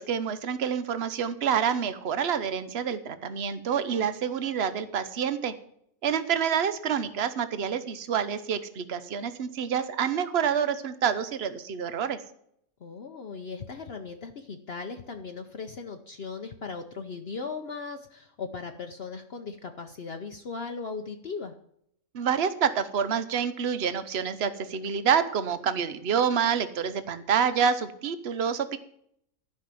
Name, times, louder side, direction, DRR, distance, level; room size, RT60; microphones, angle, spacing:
voice 1, 0.0-5.5 6.0-12.2 22.1-28.8, right 7 dB, 50° right, 12 dB, 1.1 m, -27 dB
voice 2, 12.8-21.5, left 4 dB, 50° left, 5 dB, 1.0 m, -38 dB
13.0 x 5.7 x 7.6 m, 0.70 s
omnidirectional pair, 1.4 m